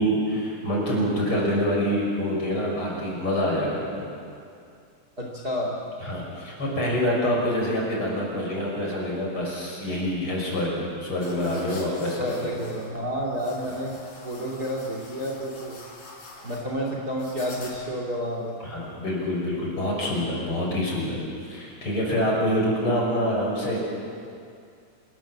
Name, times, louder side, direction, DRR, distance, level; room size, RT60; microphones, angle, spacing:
voice 1, 0.0-3.8 6.0-12.4 18.6-23.8, equal, 40° left, -3 dB, 7.1 m, -26 dB
voice 2, 5.2-5.8 12.2-14.0 14.2-15.8 16.4-18.6, equal, 30° right, -1 dB, 3.2 m, -30 dB
sound 1, 11.2-18.0, left 2 dB, 60° left, 5.4 m, -46 dB
27.0 x 21.5 x 7.6 m, 2.4 s
omnidirectional pair, 3.8 m